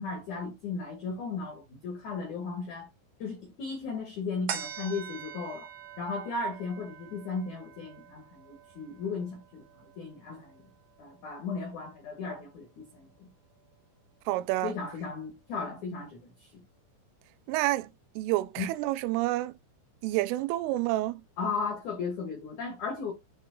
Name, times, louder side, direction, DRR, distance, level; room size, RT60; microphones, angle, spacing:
voice 1, 0.0-2.9 3.2-5.7 6.0-10.6 11.0-13.3 14.6-16.6 18.6-18.7 21.4-23.1, left 4 dB, 80° left, 1.7 m, -36 dB
sound 1, 4.5-11.2 11.7-11.8, right 9 dB, 70° right, 1.9 m, -44 dB
voice 2, 14.3-14.7 17.5-17.9 18.2-19.5 20.0-21.2, right 17 dB, 85° right, 3.0 m, -28 dB
8.9 x 3.6 x 3.9 m
omnidirectional pair, 5.8 m